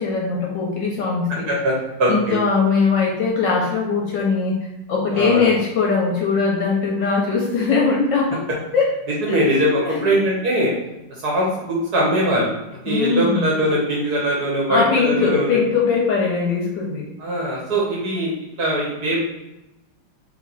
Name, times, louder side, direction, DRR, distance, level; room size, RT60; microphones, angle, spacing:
voice 1, 0.0-1.5 2.1-4.6 4.9-8.4 8.7-8.9 9.3-9.5 9.8-10.1 12.9-13.5 14.7-17.1, left 4 dB, 70° left, -1 dB, 1.2 m, -20 dB
voice 2, 2.0-2.4 5.1-5.5 9.2-10.7 11.2-12.5 12.8-15.5 17.2-18.3 18.6-19.2, equal, 60° right, -4 dB, 1.2 m, -21 dB
3.2 x 3.2 x 3.9 m, 0.95 s
omnidirectional pair, 2.4 m